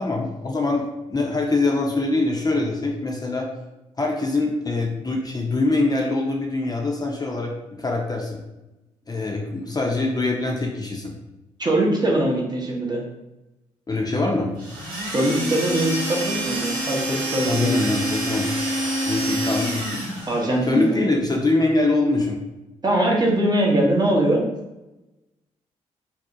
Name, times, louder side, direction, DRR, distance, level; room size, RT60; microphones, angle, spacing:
voice 1, 0.0-3.5 4.0-8.4 9.1-11.1 13.9-14.5 17.5-18.5 19.1-19.9 20.7-22.4, left 2 dB, 25° left, -1 dB, 0.6 m, -23 dB
voice 2, 11.6-13.0 15.1-17.8 20.3-21.0 22.8-24.4, right 1 dB, 30° right, -1 dB, 0.7 m, -22 dB
sound 1, 14.6-20.5, right 1 dB, 75° right, 1.0 m, -27 dB
2.6 x 2.0 x 2.6 m, 0.97 s
hypercardioid pair, 45°, 15 cm